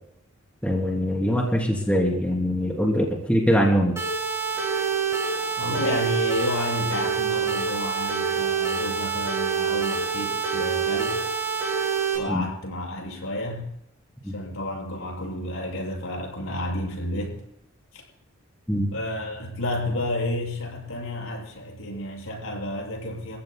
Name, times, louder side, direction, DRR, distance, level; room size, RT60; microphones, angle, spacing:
voice 1, 0.6-3.9 12.3-12.4 14.2-14.3 18.7-18.9, equal, 5° left, -1 dB, 3.1 m, -22 dB
sound 1, 4.0-12.2, right 6 dB, 15° right, 7.0 m, -26 dB
voice 2, 5.6-11.4 12.1-13.7 14.2-17.4 17.9-18.0 18.9-23.4, left 1 dB, 85° left, -1 dB, 6.6 m, -31 dB
30.0 x 15.5 x 2.2 m, 0.79 s
head